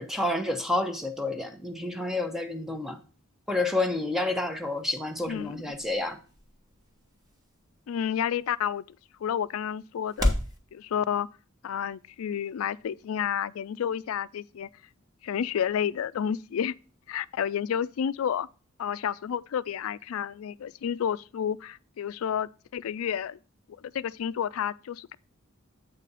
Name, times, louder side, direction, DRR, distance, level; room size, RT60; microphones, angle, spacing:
voice 1, 0.0-3.0 3.5-6.2, left 2 dB, ahead, 0.8 m, -29 dB
sound 1, 4.3-10.6, left 1 dB, 20° right, 1.2 m, -36 dB
voice 2, 5.3-5.6 7.9-8.8 9.2-10.3 10.7-11.3 11.6-14.7 15.2-16.7 17.1-18.5 18.8-23.4 23.8-25.2, left 8 dB, 85° left, 0.3 m, -30 dB
8.1 x 4.1 x 5.4 m
head